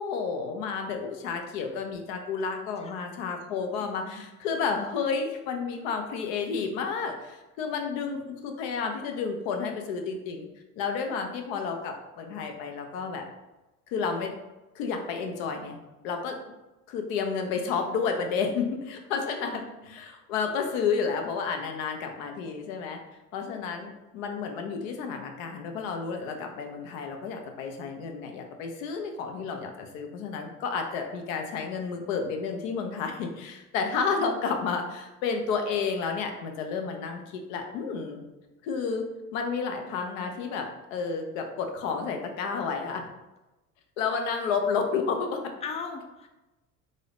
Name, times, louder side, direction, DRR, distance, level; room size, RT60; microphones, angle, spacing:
voice 1, 0.0-10.5 10.8-13.3 13.9-14.3 14.7-15.8 16.0-16.4 16.9-23.0 23.3-38.2 38.6-39.1 39.3-43.1 44.0-45.5, left 5 dB, 60° left, 4 dB, 0.8 m, -31 dB
voice 2, 3.8-4.2 19.5-20.0 34.2-34.5 45.6-46.3, left 5 dB, 15° left, 5 dB, 0.3 m, -40 dB
3.7 x 2.7 x 3.4 m, 1.0 s
hypercardioid pair, 70°, 46 cm